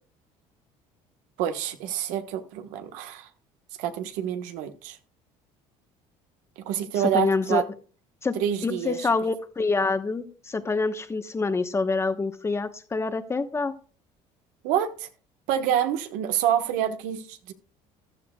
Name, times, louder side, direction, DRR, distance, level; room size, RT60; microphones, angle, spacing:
voice 1, 1.4-3.3 3.8-5.0 6.7-7.6 8.3-9.1 14.6-15.1 15.5-17.5, right 10 dB, 85° right, 1.3 m, -27 dB
voice 2, 7.1-7.6 8.2-8.3 8.6-13.7, left 3 dB, 20° left, 1.1 m, -26 dB
15.0 x 12.0 x 2.3 m
cardioid pair, 115°, 13 cm